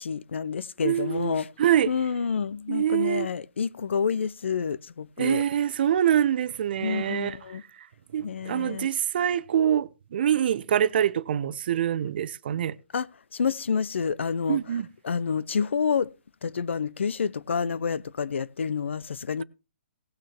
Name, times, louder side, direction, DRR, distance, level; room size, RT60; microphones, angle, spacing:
voice 1, 0.0-1.5 1.9-5.4 6.8-7.6 8.2-8.9 12.9-16.1 16.4-19.4, left 6 dB, 75° left, 0.7 m, -29 dB
voice 2, 0.8-1.3 1.6-1.9 2.7-3.3 5.2-7.4 8.1-12.8 14.5-14.9, right 10 dB, 55° right, 0.8 m, -25 dB
18.0 x 6.2 x 4.4 m
hypercardioid pair, 145°, 7 cm